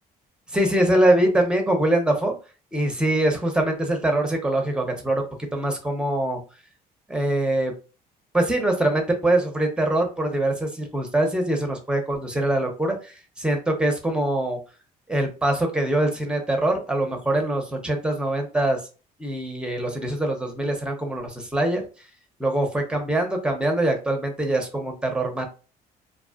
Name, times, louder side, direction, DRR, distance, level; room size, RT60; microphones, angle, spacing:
voice 1, 0.5-2.3 2.7-5.2 5.5-6.4 7.1-7.7 8.3-14.6 15.1-18.8 19.2-21.8 22.4-25.4, right 1 dB, 5° right, 3 dB, 0.7 m, -23 dB
2.6 x 2.3 x 2.4 m, 0.32 s
cardioid pair, 110°, 17 cm